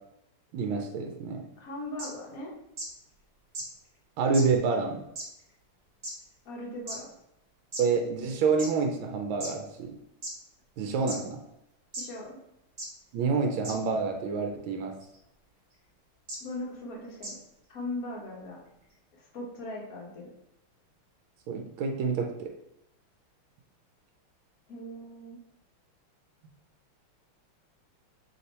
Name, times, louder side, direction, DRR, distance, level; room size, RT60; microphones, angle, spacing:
voice 1, 0.5-1.4 4.2-5.0 7.8-9.9 10.8-11.4 13.1-14.9 21.5-22.5, right 4 dB, 75° right, 3 dB, 1.3 m, -28 dB
voice 2, 1.6-2.5 6.4-7.1 11.9-12.4 16.4-17.4 17.7-18.6 19.1-20.3 24.7-25.4, left 1 dB, 55° left, -2 dB, 1.1 m, -39 dB
sound 1, 2.0-2.1 2.8-2.9 3.5-3.7 4.3-4.4 5.2-5.3 6.0-6.1 6.9-7.0 7.7-7.8 8.6-8.7 9.4-9.5 10.2-10.3 11.1-11.2 11.9-12.0 12.8-12.9 13.6-13.7 15.0-15.2 16.3-16.4 17.2-17.3, right 1 dB, 40° right, 1.0 m, -36 dB
3.5 x 2.8 x 4.1 m, 0.83 s
omnidirectional pair, 2.4 m